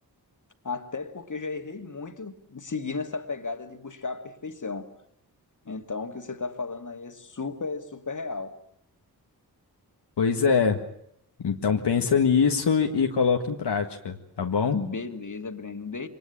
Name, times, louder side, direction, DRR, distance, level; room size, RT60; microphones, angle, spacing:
voice 1, 0.6-4.9 5.7-8.6 14.7-16.1, left 4 dB, 45° left, 2.5 m, -34 dB
voice 2, 10.2-10.8 11.4-14.8, left 6 dB, 75° left, 1.8 m, -23 dB
23.5 x 20.0 x 8.8 m
cardioid pair, 40°, 41 cm